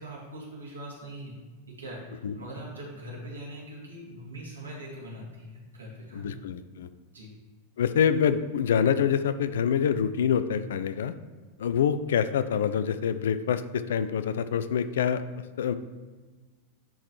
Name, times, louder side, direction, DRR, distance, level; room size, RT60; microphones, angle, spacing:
voice 1, 0.0-1.4 1.8-2.0 2.3-6.4 7.1-7.3, right 1 dB, 75° right, -4 dB, 2.0 m, -41 dB
voice 2, 6.1-6.9 7.8-11.1 11.6-15.2 15.6-15.7, left 8 dB, 60° left, 12 dB, 0.3 m, -26 dB
10.0 x 3.8 x 3.1 m, 1.4 s
figure-of-eight pair, 90°, 0 cm